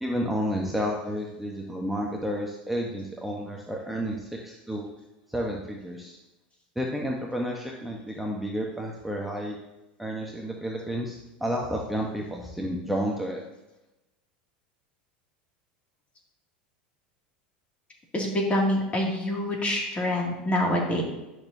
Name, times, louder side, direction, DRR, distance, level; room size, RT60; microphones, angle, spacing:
voice 1, 0.0-4.9 5.3-6.2 6.8-9.6 10.0-13.4, equal, 5° right, -1 dB, 1.0 m, -31 dB
voice 2, 18.1-21.0, left 1 dB, 25° left, -1 dB, 2.3 m, -26 dB
10.0 x 6.5 x 2.7 m, 0.98 s
hypercardioid pair, 90°, 5 cm